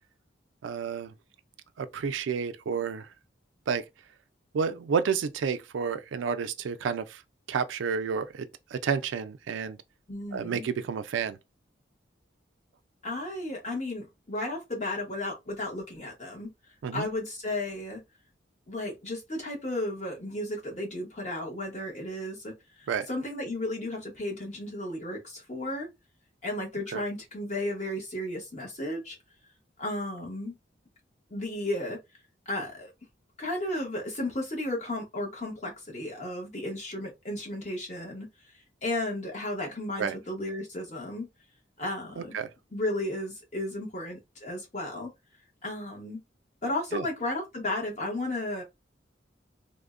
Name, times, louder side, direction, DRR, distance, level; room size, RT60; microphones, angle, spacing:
voice 1, 0.6-1.1 1.8-3.1 3.7-3.8 4.5-7.2 7.5-9.8 10.3-11.4 16.8-17.1 22.9-23.1 26.9-27.0 40.0-40.2 42.2-42.5 46.9-47.0, right 6 dB, 80° right, 0.3 m, -30 dB
voice 2, 10.1-10.7 13.0-16.5 16.9-18.0 18.7-25.9 26.4-29.2 29.8-30.6 31.3-32.0 32.5-32.9 33.4-38.3 38.8-41.3 41.8-42.3 42.7-45.1 45.6-46.2 46.6-48.6, left 1 dB, 40° left, 1.0 m, -34 dB
3.4 x 2.1 x 2.4 m
head